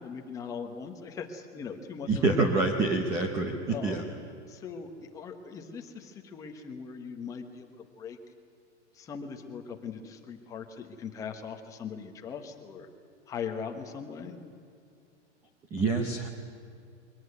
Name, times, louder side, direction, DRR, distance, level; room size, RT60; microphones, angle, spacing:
voice 1, 0.0-2.7 3.7-4.0 4.5-8.2 8.9-12.9 13.3-14.3, left 6 dB, 10° left, 4 dB, 1.0 m, -40 dB
voice 2, 2.1-4.0 15.7-16.3, right 3 dB, 10° right, 4 dB, 0.6 m, -26 dB
23.0 x 18.0 x 9.6 m, 2.4 s
supercardioid pair, 180°, 36 cm